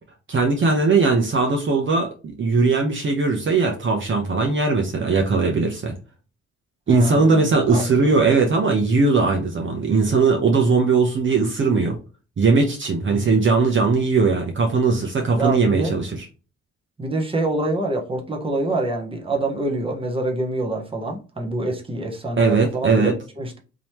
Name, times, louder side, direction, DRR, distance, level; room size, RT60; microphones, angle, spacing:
voice 1, 0.3-2.1 2.4-5.9 6.9-12.0 12.4-16.1 22.4-23.1, right 4 dB, 40° right, 1.0 m, -19 dB
voice 2, 6.9-8.1 13.0-13.3 15.3-15.9 17.0-23.6, right 2 dB, 20° right, 1.2 m, -26 dB
3.8 x 3.0 x 3.2 m
cardioid pair, 90°, 30 cm